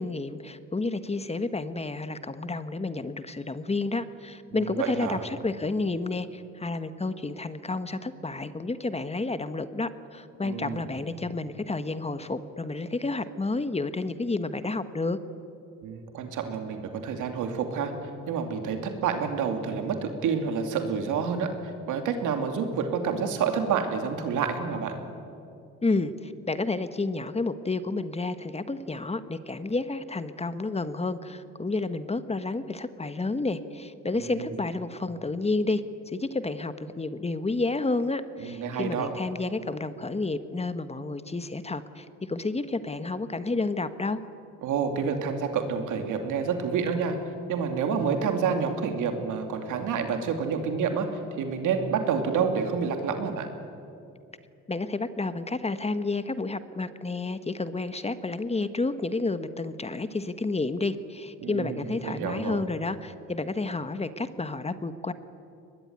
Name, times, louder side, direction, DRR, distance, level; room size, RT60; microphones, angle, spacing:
voice 1, 0.0-15.2 25.8-44.2 54.7-65.1, left 3 dB, 20° left, 11 dB, 1.2 m, -30 dB
voice 2, 4.5-5.2 10.4-10.9 15.8-17.9 18.3-21.5 21.9-24.9 34.1-34.5 38.4-39.1 44.6-47.1 47.5-51.1 51.4-53.5 61.4-62.6, right 6 dB, 85° right, 6 dB, 2.7 m, -28 dB
23.0 x 20.0 x 9.6 m, 2.6 s
cardioid pair, 90°, 30 cm